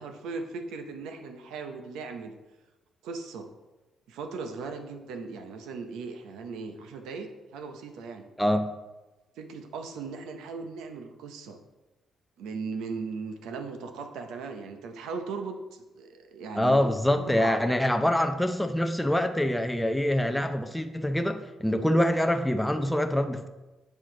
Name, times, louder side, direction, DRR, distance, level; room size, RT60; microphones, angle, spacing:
voice 1, 0.0-2.4 3.0-3.5 4.1-8.3 9.4-11.6 12.4-16.9 17.1-17.6, right 4 dB, 90° right, 6 dB, 0.7 m, -38 dB
voice 2, 16.6-23.5, left 1 dB, 5° left, 5 dB, 0.5 m, -25 dB
7.7 x 4.7 x 3.8 m, 1.1 s
cardioid pair, 90°, 0 cm